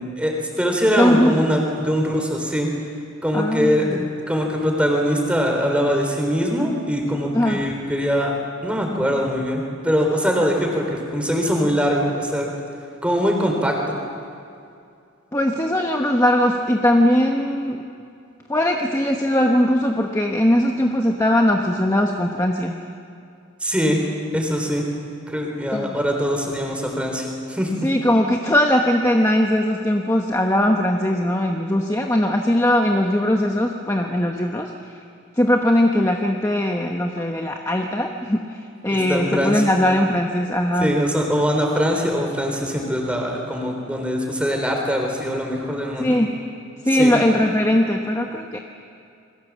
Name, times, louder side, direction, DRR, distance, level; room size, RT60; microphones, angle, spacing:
voice 1, 0.0-2.7 3.2-4.0 4.3-8.4 8.6-12.5 13.0-14.0 23.6-24.0 24.3-24.9 25.3-27.7 38.9-39.7 40.8-46.1 46.9-47.2, equal, 5° right, 1 dB, 3.8 m, -22 dB
voice 2, 1.0-1.3 3.3-4.0 7.3-7.6 15.3-17.8 18.5-22.7 25.7-26.0 27.8-34.7 35.4-38.5 38.8-40.9 46.0-46.4 46.8-48.6, left 1 dB, 15° left, 2 dB, 1.0 m, -20 dB
28.0 x 22.5 x 7.4 m, 2.5 s
head